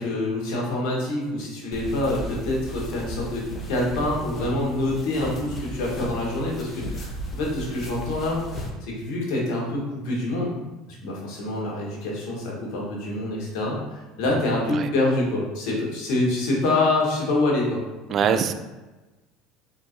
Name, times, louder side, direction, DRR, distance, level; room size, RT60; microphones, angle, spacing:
voice 1, 0.0-10.5 11.0-17.8 18.3-18.4, left 2 dB, 65° left, -3 dB, 1.4 m, -26 dB
sound 1, 1.7-8.7, right 1 dB, 35° left, 0.8 m, -35 dB
voice 2, 18.1-18.5, right 7 dB, 45° right, 9 dB, 0.3 m, -23 dB
4.1 x 3.7 x 2.6 m, 1.1 s
hypercardioid pair, 75°, 0 cm